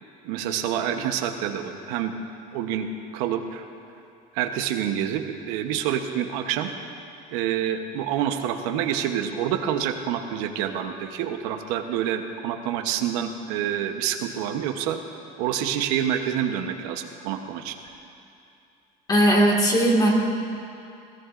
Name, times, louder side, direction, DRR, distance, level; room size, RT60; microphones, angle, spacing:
voice 1, 0.2-2.1 2.5-3.6 4.3-6.7 7.3-15.0 15.4-17.7, right 9 dB, 85° right, 6 dB, 0.9 m, -27 dB
voice 2, 19.1-20.1, right 1 dB, 20° left, -1 dB, 1.9 m, -18 dB
20.5 x 16.0 x 2.5 m, 2.6 s
cardioid pair, 140°, 18 cm